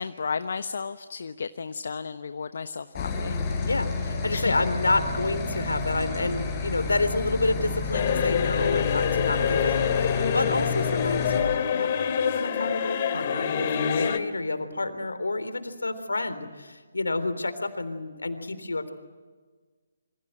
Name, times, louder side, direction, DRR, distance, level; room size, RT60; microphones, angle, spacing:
voice 1, 0.0-3.4 4.3-4.6, left 5 dB, 60° left, 10 dB, 1.0 m, -33 dB
sound 1, 2.9-11.4, left 4 dB, 20° left, 6.3 m, -30 dB
voice 2, 3.7-18.9, left 2 dB, 80° left, 11 dB, 3.6 m, -29 dB
sound 2, 7.9-14.2, left 8 dB, 40° left, 2.4 m, -26 dB
28.5 x 26.0 x 7.9 m, 1.4 s
figure-of-eight pair, 140°, 0 cm